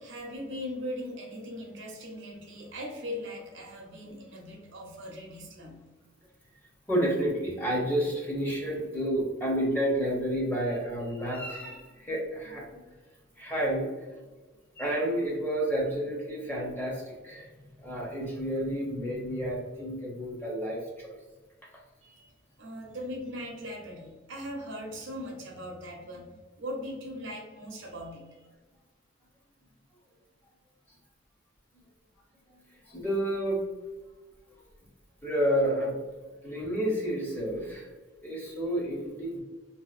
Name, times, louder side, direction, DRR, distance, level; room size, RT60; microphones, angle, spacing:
voice 1, 0.0-5.8 22.0-22.3 22.6-26.3 26.6-28.4, equal, 75° right, 1 dB, 0.6 m, -39 dB
voice 2, 6.9-12.8 13.4-13.9 14.8-17.5 17.8-21.2 32.9-33.6 35.2-35.9 36.4-37.9 38.2-39.4, equal, 10° left, -4 dB, 0.6 m, -30 dB
2.8 x 2.5 x 2.4 m, 1.2 s
head